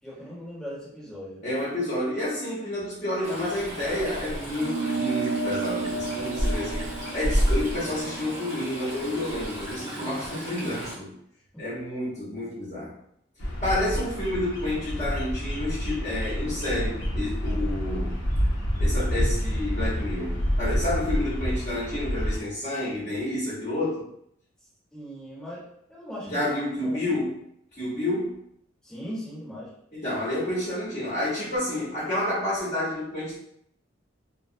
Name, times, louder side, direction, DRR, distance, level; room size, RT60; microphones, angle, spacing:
voice 1, 0.0-1.4 11.5-11.6 24.9-25.6 25.9-26.4 26.8-27.2 28.8-29.7, equal, 5° left, -9 dB, 1.0 m, -39 dB
voice 2, 1.4-6.9 7.1-11.1 11.6-12.9 13.6-18.1 18.8-24.0 26.3-27.3 27.8-28.3 29.9-33.4, left 1 dB, 40° left, -10 dB, 0.9 m, -29 dB
Stream, 3.2-10.9, equal, 40° right, 0.8 m, -31 dB
sound 1, 4.6-9.4, right 3 dB, 70° right, 0.4 m, -32 dB
Bird vocalization bird call bird song, 13.4-22.4, equal, 70° left, 0.6 m, -28 dB
2.3 x 2.0 x 2.6 m, 0.72 s
head